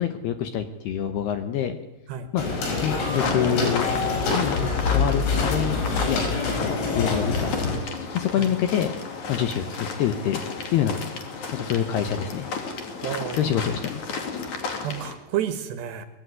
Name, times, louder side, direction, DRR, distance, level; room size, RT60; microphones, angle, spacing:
voice 1, 0.0-1.8 2.3-3.9 4.3-7.8 8.1-8.9 9.3-10.4 10.7-11.1 11.5-12.5 13.3-14.2, left 9 dB, 70° left, 8 dB, 2.6 m, -27 dB
sound 1, 2.4-7.8, left 4 dB, 90° left, 8.3 m, -25 dB
sound 2, 3.1-15.1, left 4 dB, 40° left, 3.4 m, -33 dB
voice 2, 13.0-13.5 14.8-16.1, right 10 dB, 65° right, 9 dB, 3.2 m, -30 dB
23.5 x 21.5 x 9.6 m, 0.92 s
omnidirectional pair, 5.9 m